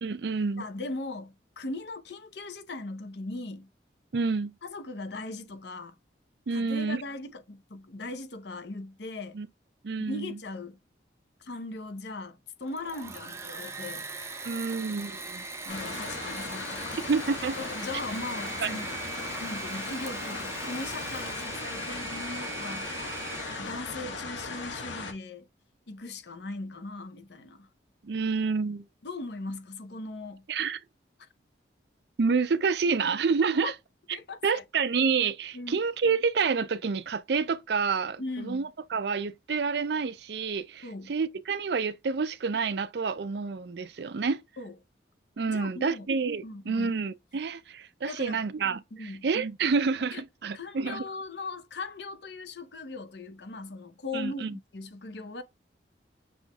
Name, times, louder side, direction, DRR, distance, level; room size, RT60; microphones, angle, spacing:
voice 1, 0.0-0.6 4.1-4.5 6.5-7.0 9.3-9.5 9.8-10.4 14.4-15.5 17.1-17.6 18.6-18.8 28.0-28.8 30.5-30.8 32.2-33.7 34.4-44.4 45.4-51.0 54.1-54.6, right 5 dB, 65° right, 0.4 m, -28 dB
voice 2, 0.6-3.7 4.6-5.9 6.5-9.4 10.0-10.8 11.4-14.1 15.6-17.0 17.6-18.9 19.4-23.1 23.6-25.5 25.9-27.7 29.0-30.4 33.6-33.7 34.1-34.6 35.5-35.8 38.2-38.7 40.8-41.1 44.6-44.7 45.5-46.1 46.4-46.9 48.1-48.4 48.9-49.3 50.1-50.2 50.5-55.4, left 2 dB, 70° left, 0.8 m, -39 dB
Engine / Mechanisms, 12.6-23.8, right 3 dB, 15° right, 0.5 m, -40 dB
sound 1, 15.7-25.1, left 3 dB, 90° left, 1.2 m, -37 dB
6.3 x 3.0 x 2.3 m
head